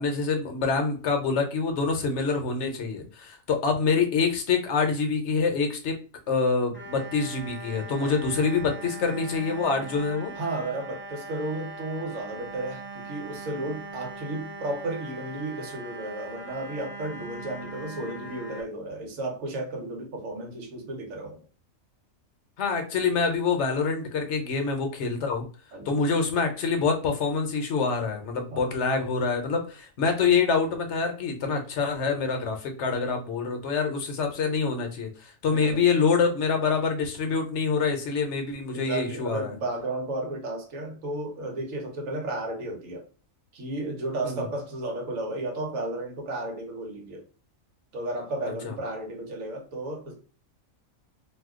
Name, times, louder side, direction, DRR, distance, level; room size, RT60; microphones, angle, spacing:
voice 1, 0.0-6.0 6.3-10.3 22.6-25.5 25.9-39.5 44.2-44.5 48.6-48.7, left 5 dB, 60° left, 0.9 m, -26 dB
sound 1, 6.7-18.6, right 2 dB, 10° right, 0.6 m, -41 dB
voice 2, 10.3-21.4 25.7-26.0 28.5-28.7 35.5-35.8 38.7-43.1 43.5-47.3 47.9-50.3, right 2 dB, 75° right, 1.2 m, -33 dB
2.7 x 2.3 x 3.5 m
omnidirectional pair, 1.4 m